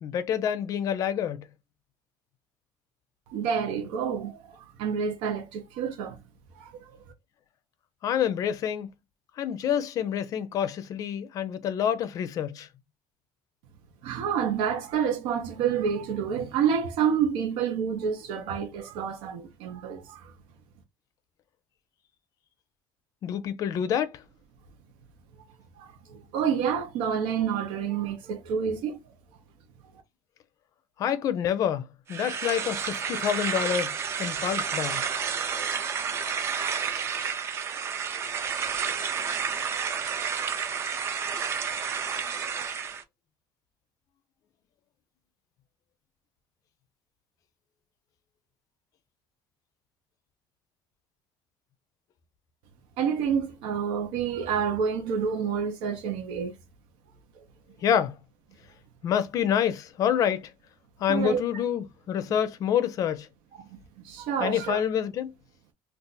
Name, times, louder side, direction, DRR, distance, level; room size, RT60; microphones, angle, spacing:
voice 1, 0.0-1.4 8.0-8.9 9.4-12.7 23.2-24.2 31.0-33.9 34.2-35.0 57.8-58.1 59.0-60.5 61.0-63.3 64.4-65.3, left 9 dB, 40° left, 0.5 m, -27 dB
voice 2, 3.3-6.2 6.5-6.8 14.0-20.3 25.8-29.0 53.0-56.6 57.4-57.5 61.1-61.4 63.5-63.7 64.0-64.8, right 7 dB, 85° right, 0.7 m, -28 dB
sound 1, 32.1-43.0, right 6 dB, 30° right, 0.4 m, -30 dB
2.5 x 2.4 x 3.8 m
cardioid pair, 170°, 9 cm